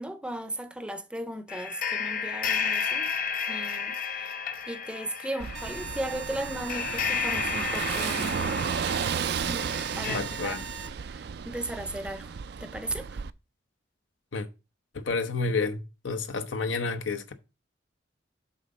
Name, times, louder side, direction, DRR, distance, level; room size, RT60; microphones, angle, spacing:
voice 1, 0.0-3.1 3.5-4.4 4.7-8.7 9.5-10.6 11.0-13.2, right 1 dB, 5° right, 0.6 m, -37 dB
sound 1, 1.5-10.2, left 6 dB, 45° left, 0.7 m, -32 dB
Car passing by / Engine, 5.4-13.3, right 7 dB, 55° right, 0.3 m, -33 dB
sound 2, 5.5-10.9, right 4 dB, 75° right, 1.0 m, -41 dB
voice 2, 10.1-10.6 14.3-14.5 14.9-17.3, left 4 dB, 85° left, 0.8 m, -30 dB
7.4 x 3.8 x 5.3 m
head